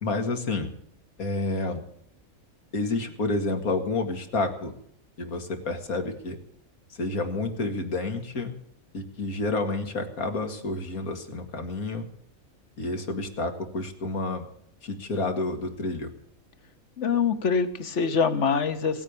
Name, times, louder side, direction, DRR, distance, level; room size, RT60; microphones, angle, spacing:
voice 1, 0.0-0.7 1.2-1.8 2.7-4.7 5.2-6.4 6.9-8.5 8.9-12.1 12.8-14.4 14.8-16.1, left 3 dB, 85° left, 5 dB, 2.4 m, -29 dB
voice 2, 17.0-19.0, left 6 dB, 55° left, 10 dB, 1.5 m, -24 dB
17.5 x 8.9 x 8.4 m, 0.67 s
omnidirectional pair, 1.5 m